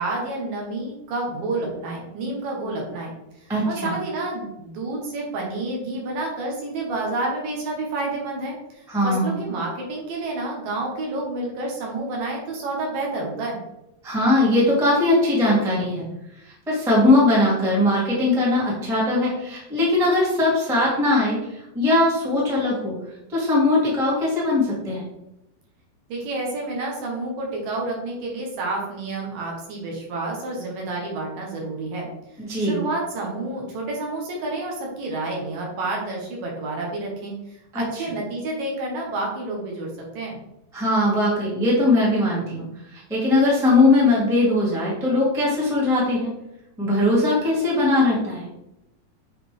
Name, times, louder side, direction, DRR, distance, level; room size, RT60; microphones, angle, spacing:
voice 1, 0.0-3.1 3.4-13.6 26.1-32.1 32.6-37.3 37.7-40.4, right 2 dB, 70° right, -1 dB, 2.9 m, -29 dB
voice 2, 3.5-3.9 8.9-9.4 14.0-16.1 16.7-22.9 23.3-25.0 32.4-32.8 37.7-38.0 40.7-42.7 42.9-46.3 46.8-48.5, left 2 dB, 5° right, -6 dB, 0.5 m, -20 dB
7.2 x 4.3 x 3.4 m, 0.87 s
omnidirectional pair, 4.4 m